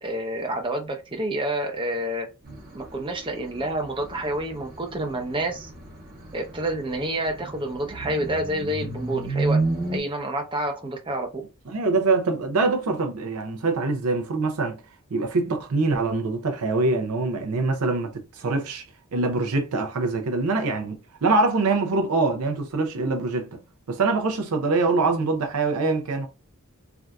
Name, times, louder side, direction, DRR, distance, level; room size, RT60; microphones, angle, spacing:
voice 1, 0.0-2.3 2.7-5.7 6.3-9.6 9.9-11.4, right 1 dB, 25° right, 0.6 m, -28 dB
sound 1, 2.4-10.0, right 3 dB, 40° right, 0.9 m, -32 dB
voice 2, 11.7-14.8 15.1-18.8 19.1-23.6 23.9-26.3, right 3 dB, 90° right, 0.6 m, -24 dB
3.4 x 2.6 x 2.3 m
head